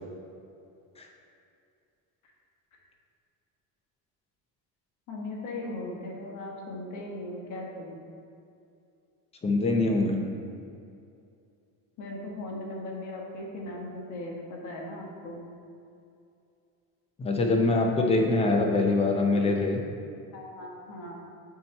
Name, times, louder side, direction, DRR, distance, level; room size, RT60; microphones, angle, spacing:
voice 1, 5.1-8.0 12.0-15.4 18.0-18.8 20.3-21.2, left 2 dB, 50° left, -1 dB, 1.3 m, -38 dB
voice 2, 9.4-10.2 17.2-19.8, left 2 dB, 15° left, 1 dB, 0.5 m, -24 dB
8.5 x 2.9 x 4.4 m, 2.5 s
cardioid pair, 150°, 38 cm